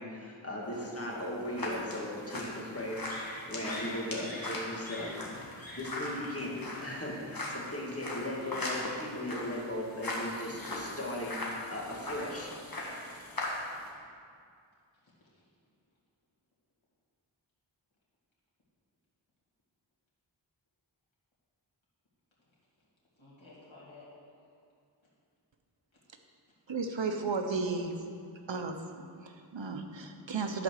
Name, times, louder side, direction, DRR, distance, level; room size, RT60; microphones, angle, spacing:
voice 1, 0.0-12.5, left 1 dB, 30° left, -4 dB, 2.3 m, -38 dB
sound 1, 0.7-13.9, left 1 dB, 50° left, 1.8 m, -39 dB
voice 2, 14.9-15.5 22.4-22.5 23.2-24.5, left 2 dB, 85° left, -7 dB, 2.2 m, -55 dB
voice 3, 26.7-27.9 28.5-28.8 29.2-30.6, right 4 dB, 75° right, 5 dB, 0.9 m, -34 dB
11.0 x 5.0 x 6.5 m, 2.3 s
wide cardioid pair, 45°, 46 cm